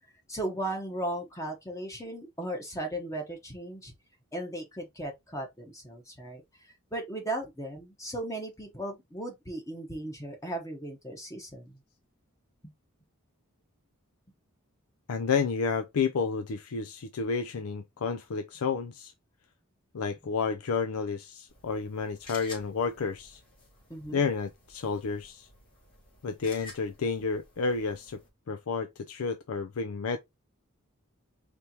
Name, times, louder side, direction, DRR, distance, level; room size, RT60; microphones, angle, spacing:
voice 1, 0.3-3.9 4.3-11.8 23.9-24.2, right 1 dB, 15° left, 1.0 m, -37 dB
voice 2, 15.1-19.1 19.9-23.4 24.1-25.5 26.2-28.2 28.5-30.2, left 5 dB, 85° left, 0.5 m, -31 dB
sound 1, 21.5-28.3, left 3 dB, 40° left, 2.4 m, -52 dB
4.4 x 3.4 x 2.8 m
head